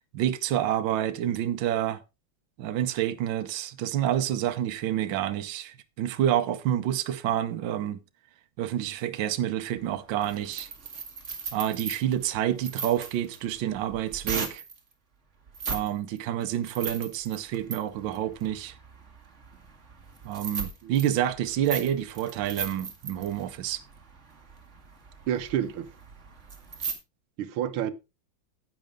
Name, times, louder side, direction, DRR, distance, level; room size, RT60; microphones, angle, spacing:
voice 1, 0.1-2.0 2.6-8.0 8.6-10.7 11.5-14.6 15.7-18.7 20.2-23.8, right 11 dB, 70° right, 1.5 m, -28 dB
sound 1, 9.8-14.8 15.5-15.9 16.2-26.9, right 5 dB, 35° right, 1.9 m, -38 dB
voice 2, 25.3-25.9 27.4-27.9, right 10 dB, 90° right, 1.6 m, -29 dB
10.5 x 8.9 x 3.6 m
omnidirectional pair, 2.3 m